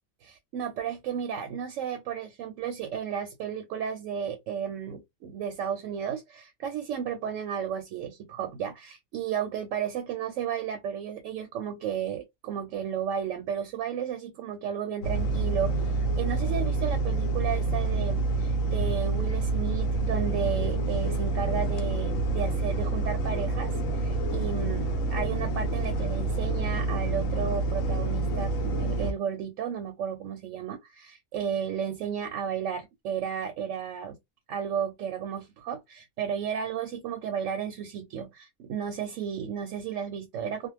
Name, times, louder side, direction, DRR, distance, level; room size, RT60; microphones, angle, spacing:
voice 1, 0.2-34.2 34.5-40.7, right 8 dB, 75° right, 0.9 m, -33 dB
sound 1, 15.0-29.1, right 3 dB, 75° left, 1.0 m, -27 dB
2.4 x 2.2 x 3.1 m
omnidirectional pair, 1.4 m